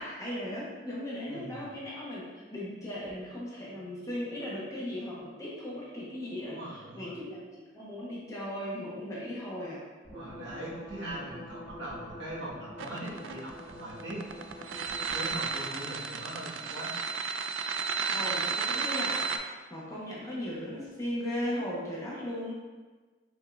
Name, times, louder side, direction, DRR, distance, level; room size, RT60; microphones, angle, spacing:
voice 1, 0.0-6.6 6.9-9.8 18.1-22.5, left 1 dB, 15° left, -6 dB, 0.9 m, -37 dB
voice 2, 1.3-1.7 6.4-7.2 10.1-14.2 15.1-17.0, right 1 dB, 70° right, -7 dB, 1.3 m, -41 dB
sound 1, 10.0-15.8, equal, 30° right, 1.4 m, -46 dB
sound 2, 12.8-19.4, right 5 dB, 90° right, 0.3 m, -32 dB
5.3 x 3.6 x 2.4 m, 1.3 s
head